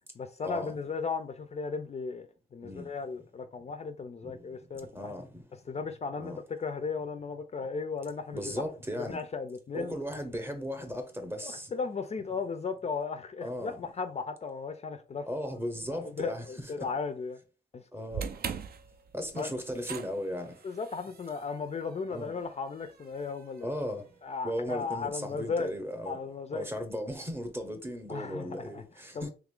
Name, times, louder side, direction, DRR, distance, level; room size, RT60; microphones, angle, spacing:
voice 1, 0.2-5.1 5.7-8.6 9.0-10.0 11.4-15.3 15.9-17.4 17.7-17.8 19.4-19.5 20.6-23.7 24.2-25.7 26.1-26.7 28.1-28.8 29.1-29.3, left 5 dB, 40° left, 0.4 m, -36 dB
voice 2, 4.8-5.4 5.8-5.9 6.2-6.4 8.3-9.2 9.7-11.7 13.4-13.8 15.3-16.9 17.9-18.2 19.1-20.6 22.1-22.3 23.6-24.0 24.4-26.2 26.5-29.3, equal, 15° right, 0.7 m, -36 dB
sound 1, 18.1-24.4, right 7 dB, 60° right, 0.4 m, -43 dB
3.1 x 2.4 x 3.6 m
wide cardioid pair, 120°, 18 cm